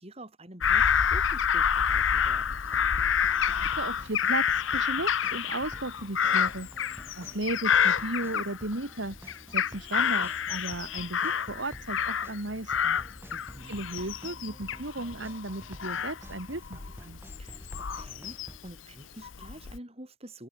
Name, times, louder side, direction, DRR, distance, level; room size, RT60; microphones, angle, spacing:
voice 1, 0.0-2.6 13.3-13.8 17.4-20.5, right 1 dB, 30° right, 4.1 m, -47 dB
Bird vocalization bird call bird song / Crow, 0.6-8.9 9.3-12.4 12.7-18.7 19.2-19.8, left 7 dB, 80° left, 0.8 m, -28 dB
sound 1, 2.6-18.6, equal, 10° right, 4.2 m, -49 dB
voice 2, 3.5-13.0 13.7-17.2, right 2 dB, 70° right, 2.5 m, -35 dB
head